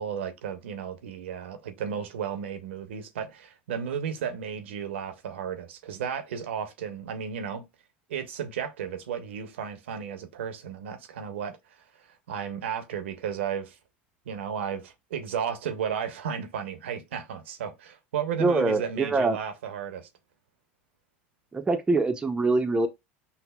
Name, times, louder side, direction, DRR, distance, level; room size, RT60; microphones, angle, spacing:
voice 1, 0.0-7.6 8.1-11.6 12.3-13.8 14.3-20.1, right 7 dB, 85° right, 0.7 m, -34 dB
voice 2, 18.4-19.4 21.5-22.9, right 3 dB, 15° right, 0.5 m, -24 dB
5.5 x 2.0 x 2.2 m
supercardioid pair, 100°, 6 cm